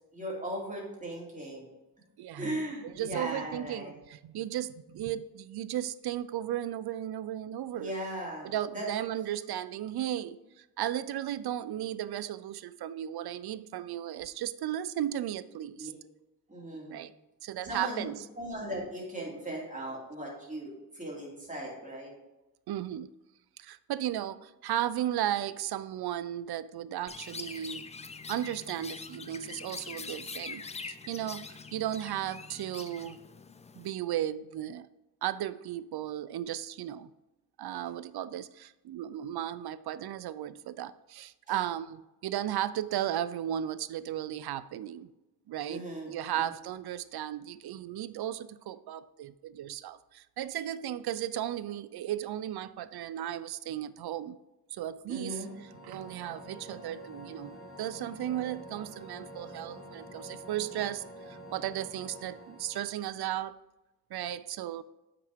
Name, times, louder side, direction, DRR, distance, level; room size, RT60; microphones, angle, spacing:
voice 1, 0.1-1.7 2.4-4.0 7.7-8.9 15.8-15.9 16.5-17.0 17.6-18.0 18.4-22.1 45.7-46.5 55.1-55.5, right 1 dB, 20° right, -3 dB, 2.6 m, -38 dB
voice 2, 2.2-7.9 8.4-15.9 16.9-17.1 17.4-18.3 22.7-23.1 23.6-27.8 28.3-33.2 33.8-34.9 35.2-37.1 37.6-45.1 45.5-54.4 54.7-55.5 55.8-63.5 64.1-64.8, right 11 dB, 70° right, 16 dB, 0.5 m, -35 dB
Chirp tweet, 27.1-33.9, left 4 dB, 20° left, 0.3 m, -44 dB
sound 1, 55.3-63.1, equal, 40° left, 1.3 m, -48 dB
7.5 x 5.9 x 3.5 m, 0.99 s
wide cardioid pair, 115°, 39 cm